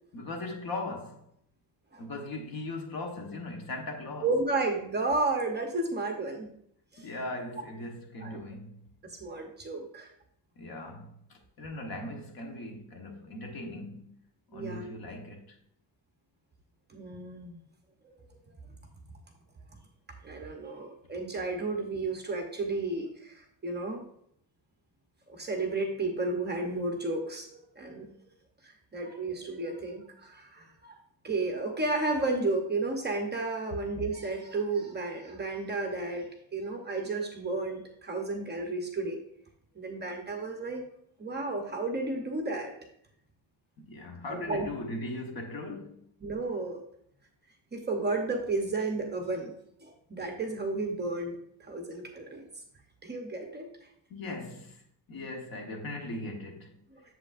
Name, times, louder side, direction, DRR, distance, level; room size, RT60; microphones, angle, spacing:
voice 1, 0.1-1.2 2.0-4.3 7.0-8.8 10.6-14.2 14.5-15.6 43.8-46.0 54.1-54.8 55.1-56.8, left 2 dB, 50° left, 1.2 m, -39 dB
voice 2, 4.2-6.5 6.9-7.1 8.2-8.4 9.0-10.1 14.5-14.9 16.9-17.6 18.0-18.1 20.2-24.0 25.3-28.1 28.6-31.0 31.2-36.3 36.5-39.2 39.7-40.8 41.2-42.7 44.3-44.7 46.2-46.8 47.7-49.5 49.8-51.4 51.7-52.5 53.0-53.7 56.9-57.0, right 3 dB, 25° right, 0.8 m, -32 dB
7.9 x 7.3 x 2.5 m
cardioid pair, 170°, 45 cm